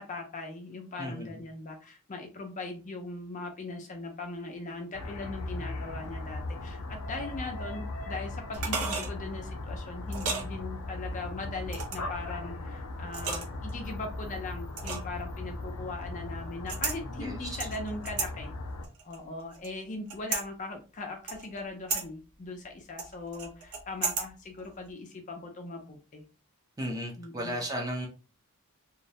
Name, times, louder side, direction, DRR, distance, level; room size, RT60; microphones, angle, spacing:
voice 1, 0.0-18.5 19.0-26.2 27.2-27.6, left 3 dB, 35° left, 3 dB, 0.4 m, -40 dB
voice 2, 1.0-1.4 17.2-17.6 26.8-28.1, equal, 15° right, -1 dB, 0.5 m, -35 dB
sound 1, 4.9-18.9, left 2 dB, 90° left, 0.5 m, -38 dB
sound 2, 8.5-9.1 10.1-10.5 11.7-12.1 13.1-13.7 14.8-15.2 16.7-17.0 17.6-18.3 18.8-19.7 20.1-20.5 21.3-21.6 21.9-22.0 23.0-24.3 24.6-24.7, right 5 dB, 85° right, 0.6 m, -33 dB
2.3 x 2.0 x 2.7 m, 0.34 s
head